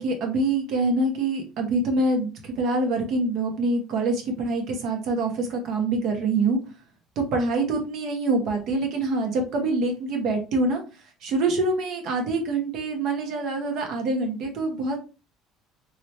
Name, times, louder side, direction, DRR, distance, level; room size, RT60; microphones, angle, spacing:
voice 1, 0.0-6.6 7.2-10.8 11.2-15.0, right 2 dB, 55° right, 4 dB, 1.0 m, -25 dB
3.2 x 3.0 x 2.8 m, 0.32 s
cardioid pair, 145°, 0 cm